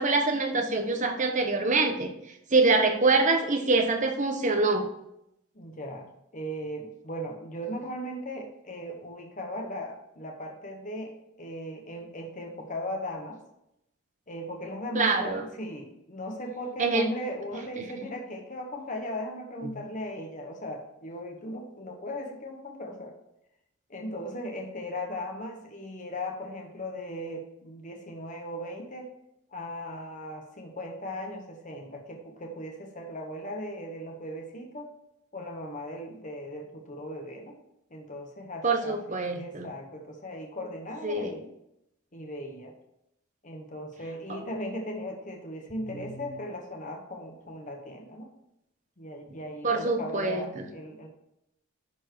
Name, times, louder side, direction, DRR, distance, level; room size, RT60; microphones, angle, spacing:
voice 1, 0.0-2.1 2.5-4.8 14.9-15.4 16.8-17.1 38.6-39.7 41.0-41.3 44.3-44.4 49.6-50.6, right 3 dB, 35° right, 4 dB, 1.1 m, -25 dB
voice 2, 5.5-6.1 6.3-13.4 14.3-23.2 23.9-29.1 29.5-34.9 35.3-37.6 37.9-39.0 39.3-41.5 42.1-42.7 43.4-48.3 49.0-51.1, equal, 35° left, 2 dB, 1.2 m, -37 dB
11.0 x 4.5 x 4.7 m, 0.82 s
head